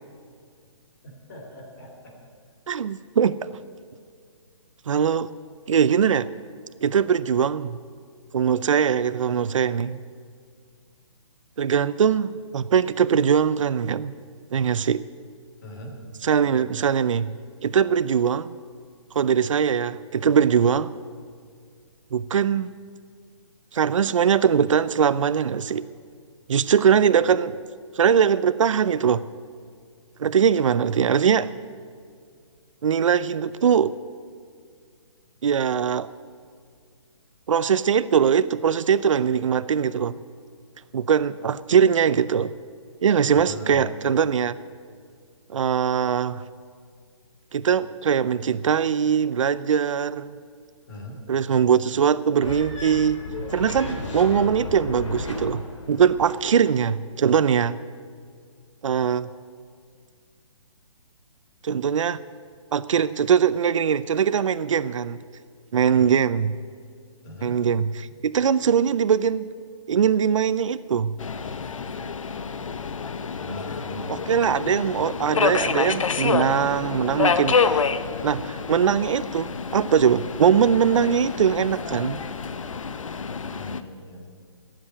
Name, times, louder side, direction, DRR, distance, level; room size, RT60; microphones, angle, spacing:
voice 1, 1.0-2.1 15.6-15.9 43.3-43.9 50.9-51.2 65.9-66.1 67.2-67.6 73.4-74.2 83.4-84.3, left 1 dB, 35° left, 1 dB, 2.9 m, -39 dB
voice 2, 2.7-3.4 4.9-5.3 5.7-6.3 6.8-7.8 8.3-10.0 11.6-14.1 14.5-15.0 16.2-17.3 17.6-18.5 19.1-20.9 22.1-22.7 23.7-25.8 26.5-27.6 27.9-29.2 30.2-31.5 32.8-33.9 35.4-36.1 37.5-40.2 40.9-42.5 43.0-44.6 45.5-46.4 47.5-50.4 51.3-53.2 53.5-55.6 55.9-57.8 58.8-59.3 61.6-62.2 62.7-65.2 65.7-66.5 67.4-69.5 69.9-71.1 74.1-77.8 78.2-82.2, right 7 dB, 80° right, 15 dB, 0.5 m, -21 dB
sound 1, 52.4-56.4, left 2 dB, 70° left, 2.9 m, -33 dB
Subway metro underground, 71.2-83.8, left 5 dB, 90° left, 0.8 m, -28 dB
12.5 x 7.8 x 10.0 m, 2.1 s
hypercardioid pair, 170°, 16 cm